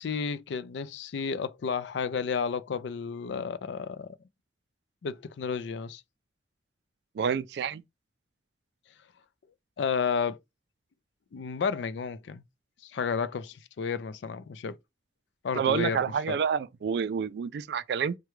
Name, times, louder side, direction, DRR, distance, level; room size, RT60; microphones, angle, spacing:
voice 1, 0.0-4.2 5.0-6.0 9.8-10.4 11.3-12.4 12.8-14.8 15.4-16.4, left 6 dB, 75° left, 0.4 m, -32 dB
voice 2, 7.2-7.8 15.6-18.2, right 7 dB, 60° right, 0.3 m, -28 dB
4.7 x 2.2 x 3.0 m
head